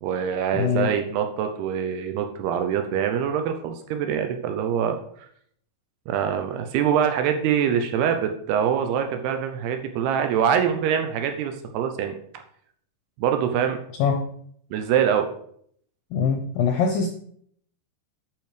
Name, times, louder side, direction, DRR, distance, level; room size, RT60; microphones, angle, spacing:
voice 1, 0.0-5.0 6.1-12.2 13.2-13.8 14.7-15.3, right 8 dB, 75° right, 6 dB, 2.6 m, -24 dB
voice 2, 0.5-0.9 14.0-14.2 16.1-17.1, left 6 dB, 80° left, 4 dB, 2.1 m, -22 dB
10.5 x 6.0 x 5.0 m, 0.65 s
omnidirectional pair, 5.1 m